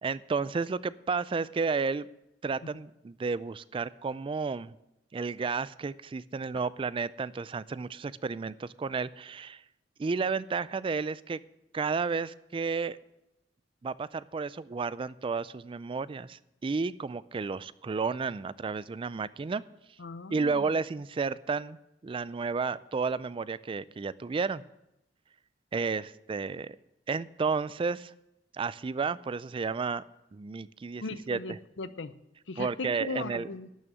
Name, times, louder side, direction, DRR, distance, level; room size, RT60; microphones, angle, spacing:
voice 1, 0.0-2.1 2.4-4.7 5.1-9.6 10.0-11.4 11.7-13.0 13.8-19.6 20.3-21.8 22.0-24.6 25.7-26.8 27.1-28.1 28.5-30.0 30.3-31.4 32.6-33.5, right 4 dB, 30° right, 18 dB, 0.3 m, -32 dB
voice 2, 20.0-20.7 31.0-32.1 32.5-33.7, left 3 dB, 80° left, 14 dB, 0.7 m, -38 dB
12.0 x 6.3 x 9.0 m, 0.88 s
head